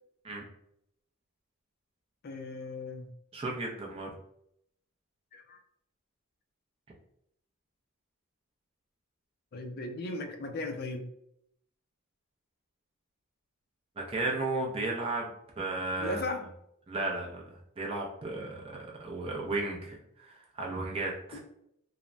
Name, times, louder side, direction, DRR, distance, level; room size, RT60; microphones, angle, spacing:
voice 1, 2.2-3.1 5.3-5.6 9.5-11.1 16.0-16.4 21.3-21.4, left 2 dB, 45° left, 5 dB, 0.4 m, -37 dB
voice 2, 3.3-4.1 14.0-16.2 16.9-21.4, right 2 dB, 25° right, -2 dB, 0.4 m, -34 dB
3.1 x 2.1 x 2.5 m, 0.75 s
head